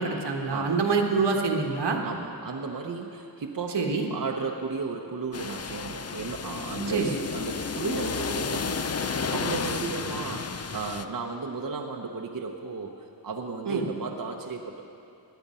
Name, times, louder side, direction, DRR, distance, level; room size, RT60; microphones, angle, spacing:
voice 1, 0.0-2.0 3.7-4.1 6.9-7.2 13.6-13.8, right 4 dB, 85° right, 2 dB, 1.5 m, -26 dB
voice 2, 0.5-0.8 2.0-12.9 13.2-14.8, right 4 dB, 55° right, 2 dB, 0.9 m, -34 dB
sound 1, 5.3-11.1, left 5 dB, 40° left, 0.6 m, -32 dB
17.0 x 10.5 x 5.5 m, 2.6 s
wide cardioid pair, 75°, 40 cm